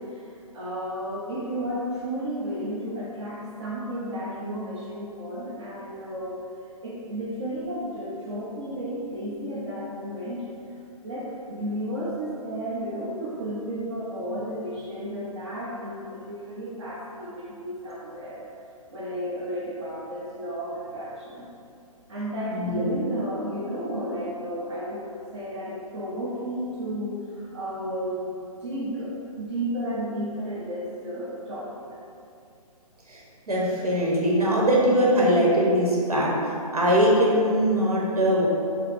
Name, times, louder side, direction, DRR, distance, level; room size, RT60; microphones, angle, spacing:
voice 1, 0.1-6.4 6.8-10.5 11.0-18.4 18.9-21.4 22.1-25.0 25.3-31.8, equal, 50° right, -6 dB, 0.8 m, -33 dB
voice 2, 22.5-22.9 33.1-33.2 33.5-36.3 36.7-38.5, equal, 80° right, -4 dB, 1.2 m, -21 dB
5.5 x 2.0 x 3.6 m, 2.5 s
figure-of-eight pair, 135°, 19 cm